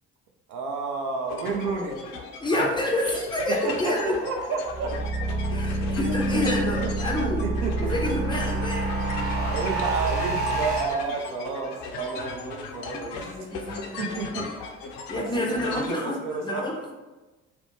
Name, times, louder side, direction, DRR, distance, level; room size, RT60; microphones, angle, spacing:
voice 1, 0.5-2.0 3.5-4.9 6.0-6.5 6.8-6.9 7.4-7.9 9.3-13.3 14.0-14.8 15.1-16.8, right 4 dB, 55° right, 2 dB, 0.5 m, -31 dB
sound 1, 1.3-16.0, left 4 dB, 65° left, 0.5 m, -37 dB
voice 2, 2.4-4.2 5.5-7.4 7.8-9.0 13.1-14.0 15.1-16.2 16.4-16.9, left 1 dB, 15° left, -1 dB, 0.5 m, -28 dB
sound 2, 4.7-10.8, right 2 dB, 40° right, 1.0 m, -27 dB
2.5 x 2.1 x 2.9 m, 1.2 s
figure-of-eight pair, 45°, 36 cm